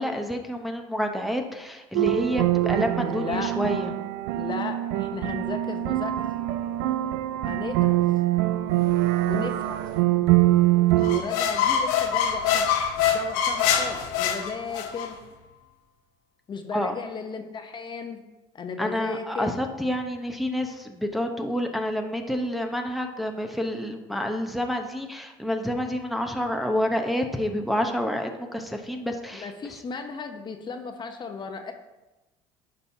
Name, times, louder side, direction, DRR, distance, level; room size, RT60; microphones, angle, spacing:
voice 1, 0.0-3.9 16.7-16.9 18.8-29.5, equal, ahead, 3 dB, 0.8 m, -28 dB
sound 1, 1.9-11.2, right 16 dB, 85° right, 0.4 m, -24 dB
voice 2, 3.0-3.5 4.3-6.3 7.4-8.0 9.2-9.9 11.0-15.2 16.5-18.2 18.5-19.5 29.3-31.7, left 5 dB, 35° left, 6 dB, 0.8 m, -35 dB
sound 2, 11.0-15.1, left 8 dB, 80° left, 0.9 m, -24 dB
9.9 x 5.4 x 2.8 m, 1.1 s
supercardioid pair, 80°, 13 cm